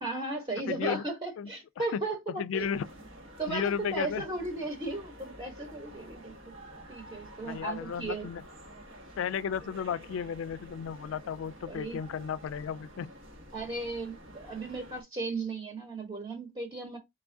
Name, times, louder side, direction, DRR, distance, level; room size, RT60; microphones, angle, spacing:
voice 1, 0.0-2.7 3.4-6.3 6.9-8.3 11.6-12.0 13.5-17.0, right 2 dB, 25° right, 0.9 m, -36 dB
voice 2, 0.7-1.0 1.4-1.5 1.8-2.0 2.3-2.9 3.5-4.2 7.4-8.4 9.2-13.1, left 7 dB, 90° left, 0.3 m, -34 dB
sound 1, 2.5-15.0, equal, 85° right, 1.3 m, -49 dB
4.2 x 3.5 x 2.5 m
head